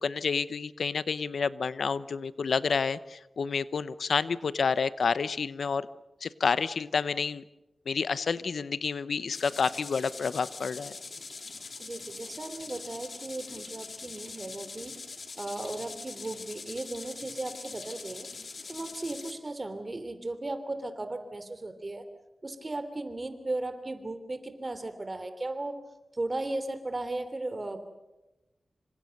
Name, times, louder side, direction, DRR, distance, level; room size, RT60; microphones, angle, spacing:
voice 1, 0.0-5.9 6.2-7.4 7.9-10.9, left 5 dB, 90° left, 16 dB, 0.8 m, -29 dB
Sprinkler Loop, 9.3-19.3, left 4 dB, 65° left, 2.9 m, -43 dB
voice 2, 11.8-15.0 15.4-18.3 18.7-22.0 22.4-25.8 26.1-27.8, right 2 dB, 35° right, 10 dB, 3.2 m, -36 dB
27.0 x 26.0 x 6.6 m, 1.0 s
wide cardioid pair, 90°, 0 cm